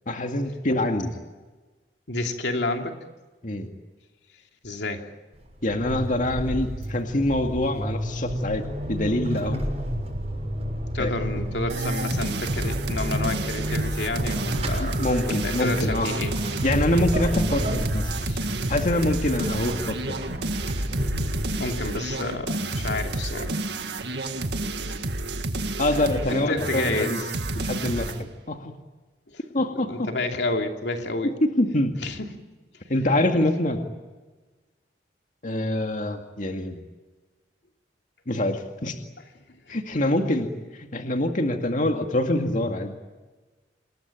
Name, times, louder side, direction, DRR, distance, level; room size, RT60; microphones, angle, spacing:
voice 1, 0.1-1.1 3.4-3.7 5.6-9.6 11.0-11.1 14.8-16.1 16.6-18.1 18.7-20.2 25.8-27.2 27.6-28.7 29.5-30.1 31.4-32.0 32.9-33.8 35.4-36.8 38.3-39.0 39.7-42.9, left 1 dB, 50° left, 4 dB, 2.2 m, -25 dB
voice 2, 2.1-3.0 4.6-5.1 10.9-16.3 18.1-18.5 21.6-23.6 24.6-24.8 26.3-27.3 29.3-31.4 32.0-32.3 33.3-33.5 39.3-39.8, left 2 dB, 80° left, 4 dB, 2.8 m, -30 dB
Vehicle / Accelerating revving vroom / Squeak, 5.3-22.6, equal, 35° right, 6.8 m, -31 dB
sound 1, 11.7-28.2, right 2 dB, 70° right, 2.0 m, -30 dB
27.5 x 20.5 x 9.0 m, 1.2 s
head